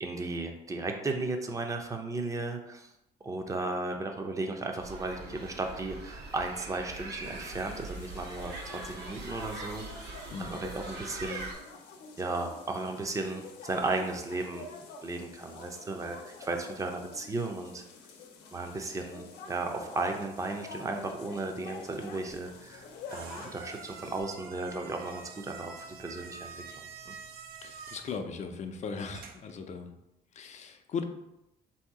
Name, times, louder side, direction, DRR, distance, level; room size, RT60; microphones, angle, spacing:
voice 1, 0.0-2.9 3.2-11.5 12.2-14.6 15.0-17.8 18.5-27.2, right 3 dB, 20° right, 4 dB, 0.6 m, -35 dB
sound 1, 4.8-11.5, right 2 dB, 80° right, 1.1 m, -42 dB
sound 2, 7.2-24.2, left 4 dB, 85° left, 0.7 m, -48 dB
sound 3, 22.6-29.6, right 5 dB, 65° right, 0.6 m, -48 dB
voice 2, 27.6-29.9 30.4-31.0, left 5 dB, 45° left, 7 dB, 0.5 m, -38 dB
3.5 x 2.8 x 4.7 m, 0.90 s
cardioid pair, 110°, 17 cm